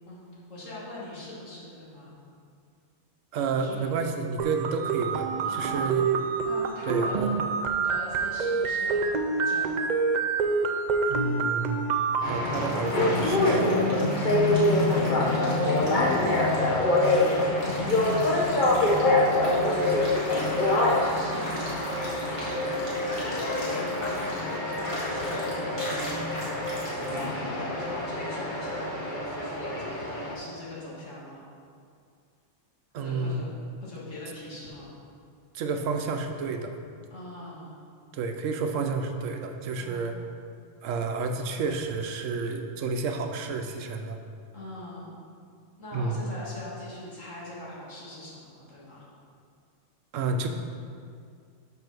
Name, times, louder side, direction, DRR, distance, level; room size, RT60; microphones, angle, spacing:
voice 1, 0.5-2.2 3.5-3.9 5.4-5.9 6.4-7.2 7.8-9.7 14.2-14.7 15.1-20.3 20.6-22.8 23.5-31.4 33.0-33.5 33.8-34.9 37.1-37.8 39.8-40.2 44.5-45.1 45.8-49.0, left 1 dB, 85° left, -7 dB, 2.1 m, -42 dB
voice 2, 3.3-5.3 5.5-6.0 6.9-7.3 11.1-11.9 12.2-13.8 32.9-33.4 35.5-36.8 38.1-40.2 40.8-44.2 45.9-46.2 50.1-50.5, right 4 dB, 90° right, 5 dB, 1.1 m, -30 dB
sound 1, 4.4-12.4, right 5 dB, 60° right, 0.4 m, -27 dB
sound 2, 12.2-30.3, left 2 dB, 45° left, 1.0 m, -25 dB
sound 3, 12.4-27.3, equal, 25° left, 1.9 m, -40 dB
5.8 x 5.5 x 6.0 m, 2.3 s
omnidirectional pair, 1.3 m